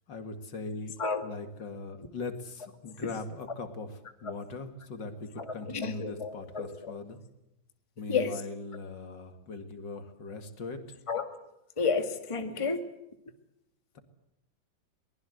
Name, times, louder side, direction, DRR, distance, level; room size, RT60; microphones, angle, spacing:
voice 1, 0.1-0.9 1.2-7.2 8.0-10.8, left 3 dB, 65° left, 8 dB, 2.7 m, -40 dB
voice 2, 1.0-1.4 3.0-3.1 5.4-6.9 8.1-8.3 11.1-11.4 11.8-12.8, left 5 dB, 15° left, 7 dB, 1.7 m, -31 dB
23.0 x 20.0 x 7.9 m, 0.86 s
omnidirectional pair, 2.1 m